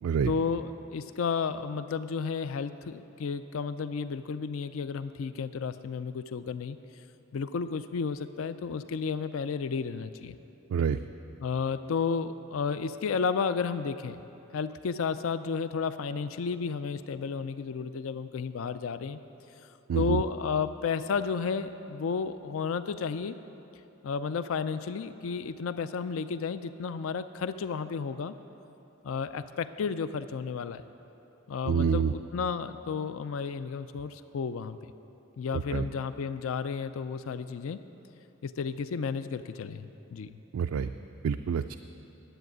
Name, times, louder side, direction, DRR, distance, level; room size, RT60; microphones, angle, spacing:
voice 1, 0.3-6.8 7.3-10.4 11.4-14.2 14.5-19.2 19.9-23.4 24.0-28.3 29.0-30.8 31.5-34.8 35.4-37.8 38.4-40.4, left 5 dB, 75° left, 12 dB, 0.4 m, -32 dB
voice 2, 19.9-20.2 31.7-32.1 35.5-35.9 40.5-40.9 41.2-41.8, right 6 dB, 85° right, 8 dB, 0.3 m, -27 dB
10.0 x 7.9 x 9.3 m, 3.0 s
head